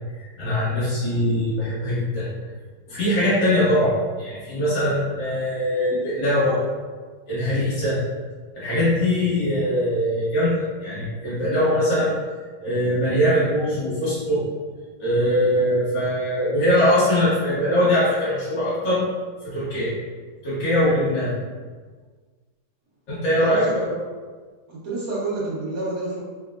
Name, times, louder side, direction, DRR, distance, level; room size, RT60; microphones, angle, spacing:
voice 1, 0.2-2.3 2.9-6.6 7.3-8.0 8.5-12.2 12.6-14.5 15.0-19.0 19.4-19.9 20.4-21.3 23.1-23.9, equal, 45° left, -10 dB, 1.2 m, -22 dB
voice 2, 23.4-23.8 24.7-26.2, right 2 dB, 50° right, -7 dB, 1.3 m, -28 dB
4.6 x 3.3 x 2.4 m, 1.5 s
omnidirectional pair, 2.4 m